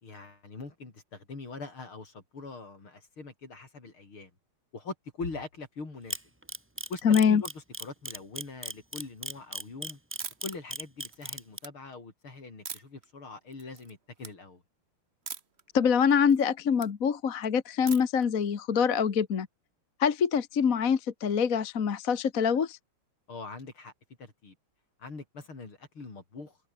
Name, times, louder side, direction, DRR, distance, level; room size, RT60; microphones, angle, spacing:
voice 1, 0.0-4.3 4.7-6.2 6.9-10.0 10.4-14.6 23.3-23.9 24.2-24.6 25.0-26.6, left 3 dB, 75° left, 5.8 m, -42 dB
Camera, 6.1-11.6, right 1 dB, 10° right, 1.0 m, -36 dB
voice 2, 7.0-7.4 15.7-19.5 20.0-22.8, left 7 dB, 45° left, 1.6 m, -25 dB
sound 1, 10.2-10.6 11.0-11.7 12.7-13.1 13.5-13.9 14.2-14.3 15.3-15.6 16.0-16.9 17.9-18.2, right 6 dB, 35° right, 1.3 m, -41 dB
open air
omnidirectional pair, 2.4 m